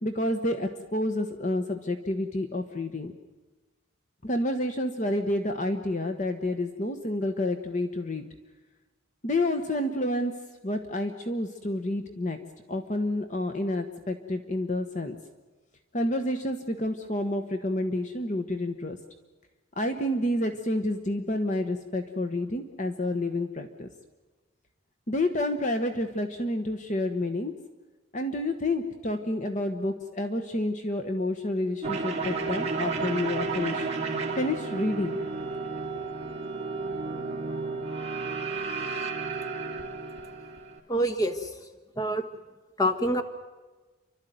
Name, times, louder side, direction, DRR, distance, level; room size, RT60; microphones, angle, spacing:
voice 1, 0.0-3.1 4.2-8.3 9.2-10.3 10.6-12.4 12.7-15.2 15.9-19.0 19.8-23.9 25.1-27.5 28.1-35.2, left 1 dB, 35° left, 6 dB, 1.1 m, -29 dB
sound 1, 31.8-40.8, right 4 dB, 30° right, 2.4 m, -32 dB
voice 2, 40.9-41.6 42.0-42.2 42.8-43.2, equal, 20° left, 7 dB, 1.4 m, -26 dB
29.0 x 12.5 x 9.3 m, 1.2 s
head